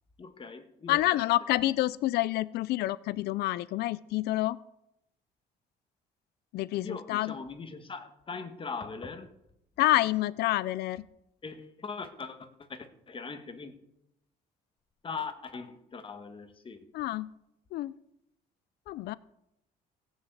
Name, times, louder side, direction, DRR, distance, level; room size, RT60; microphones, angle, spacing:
voice 1, 0.2-1.3 6.8-9.3 11.4-13.8 15.0-16.9, left 4 dB, 30° left, 9 dB, 1.6 m, -41 dB
voice 2, 0.9-4.6 6.5-7.3 9.8-11.1 16.9-17.3 17.7-17.9 18.9-19.2, left 16 dB, 75° left, 18 dB, 0.5 m, -28 dB
16.5 x 6.5 x 8.1 m, 0.83 s
cardioid pair, 110°, 17 cm